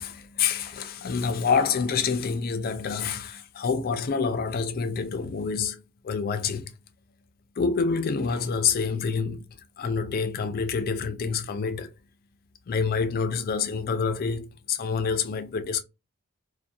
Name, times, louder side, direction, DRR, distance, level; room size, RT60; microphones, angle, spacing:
voice 1, 0.0-6.7 7.6-9.4 9.8-11.9 12.7-15.8, left 5 dB, 45° left, 0.3 m, -27 dB
2.6 x 2.1 x 2.3 m
head